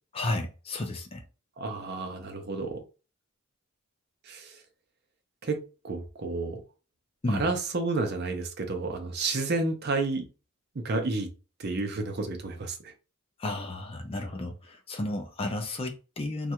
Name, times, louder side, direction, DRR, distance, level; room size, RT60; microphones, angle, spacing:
voice 1, 0.1-1.2 7.2-7.4 13.4-16.5, left 2 dB, 25° left, 0.4 m, -32 dB
voice 2, 1.6-2.8 4.2-4.6 5.4-6.6 7.3-10.3 10.7-11.3 11.6-12.9, right 3 dB, 45° right, 0.6 m, -31 dB
3.2 x 2.3 x 2.9 m
head